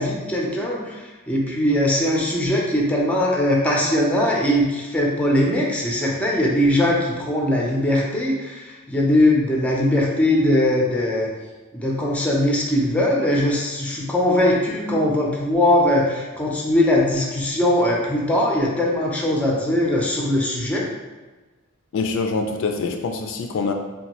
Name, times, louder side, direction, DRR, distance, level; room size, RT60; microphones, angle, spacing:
voice 1, 0.0-11.3 11.7-20.9, left 1 dB, 5° left, -2 dB, 0.5 m, -20 dB
voice 2, 21.9-23.7, left 4 dB, 65° left, 4 dB, 0.3 m, -24 dB
3.8 x 2.2 x 2.9 m, 1.2 s
head